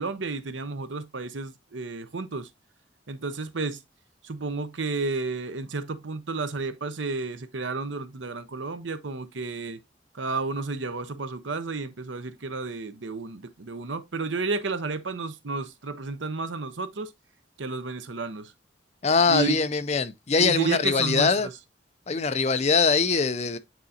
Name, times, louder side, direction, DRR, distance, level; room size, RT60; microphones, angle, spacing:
voice 1, 0.0-2.5 3.1-3.8 4.2-9.8 10.1-17.1 17.6-18.5 19.3-19.6 20.4-21.5, right 3 dB, 80° right, 0.8 m, -32 dB
voice 2, 19.0-21.5 22.1-23.6, left 5 dB, 35° left, 0.5 m, -22 dB
9.1 x 3.9 x 2.8 m
head